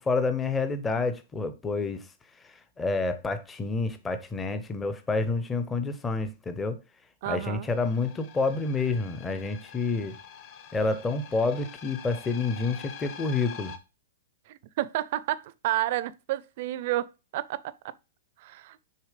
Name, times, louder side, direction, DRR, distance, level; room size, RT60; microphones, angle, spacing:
voice 1, 0.0-2.1 2.4-6.8 7.3-10.2 10.7-13.7, left 3 dB, 10° left, 0.7 m, -28 dB
voice 2, 7.2-7.7 14.5-17.9 18.4-18.8, right 14 dB, 40° right, 0.5 m, -31 dB
sound 1, 7.7-13.8, left 7 dB, 35° left, 1.0 m, -45 dB
6.6 x 3.5 x 4.9 m
hypercardioid pair, 165°, 0 cm